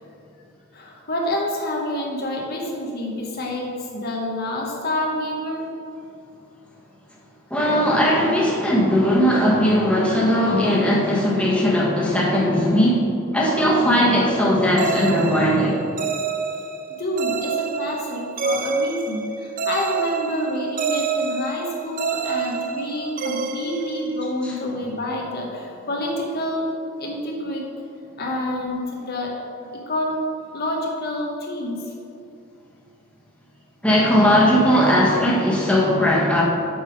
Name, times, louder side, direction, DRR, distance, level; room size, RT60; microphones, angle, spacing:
voice 1, 0.7-5.7 17.0-27.7 28.2-29.4 29.7-30.2 30.5-31.9, left 1 dB, 45° left, -1 dB, 0.9 m, -28 dB
voice 2, 7.5-13.0 13.3-15.8 24.4-24.5 33.8-36.4, equal, 5° left, -5 dB, 1.3 m, -18 dB
sound 1, 14.8-24.6, right 5 dB, 40° right, 0.4 m, -28 dB
7.9 x 5.5 x 5.1 m, 2.6 s
head